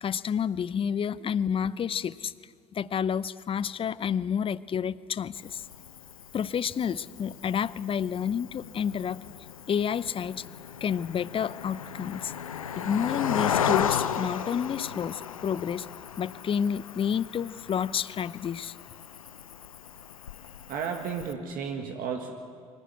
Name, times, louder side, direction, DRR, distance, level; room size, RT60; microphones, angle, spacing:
voice 1, 0.0-2.3 2.7-5.6 6.3-9.2 9.7-10.4 10.8-12.3 12.7-15.9 16.2-18.7, left 8 dB, 30° left, 19 dB, 0.7 m, -29 dB
Cricket, 5.3-21.3, left 8 dB, 85° left, 0.7 m, -35 dB
voice 2, 20.7-22.3, right 6 dB, 55° right, 2 dB, 1.9 m, -33 dB
24.5 x 16.0 x 9.5 m, 2.2 s
hypercardioid pair, 60°, 17 cm